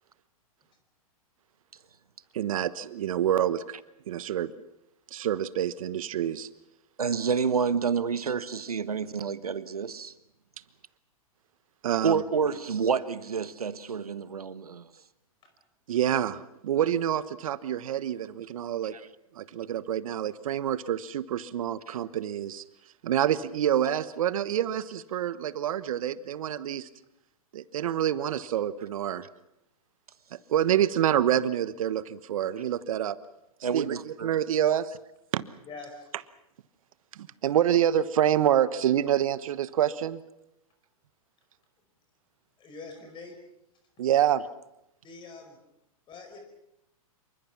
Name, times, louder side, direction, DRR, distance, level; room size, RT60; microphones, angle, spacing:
voice 1, 2.3-3.6 4.1-4.5 5.1-6.5 11.8-12.2 15.9-18.9 19.3-22.6 23.0-26.9 27.5-29.3 30.3-33.2 33.7-34.9 35.3-35.4 37.2-40.2 44.0-44.4, right 10 dB, 65° right, 15 dB, 1.2 m, -27 dB
voice 2, 7.0-10.1 12.0-14.9 18.9-19.0 21.9-22.0 33.6-34.3, right 6 dB, 90° right, 15 dB, 1.2 m, -29 dB
voice 3, 35.6-36.1 42.6-43.4 45.0-45.6 46.1-46.4, left 3 dB, 25° left, 6 dB, 4.9 m, -44 dB
27.0 x 24.0 x 6.0 m, 0.85 s
hypercardioid pair, 120°, 19 cm